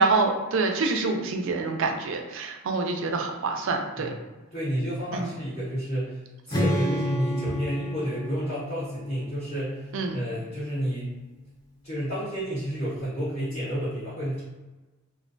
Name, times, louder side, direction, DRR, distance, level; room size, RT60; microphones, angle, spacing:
voice 1, 0.0-4.1 5.1-5.3 9.9-10.2, right 3 dB, 65° right, 3 dB, 0.4 m, -26 dB
voice 2, 4.5-6.2 6.5-11.1 11.8-14.4, equal, 35° left, -10 dB, 0.9 m, -31 dB
Strum, 6.5-10.6, left 1 dB, 20° left, 0.5 m, -30 dB
2.3 x 2.2 x 2.5 m, 1.1 s
head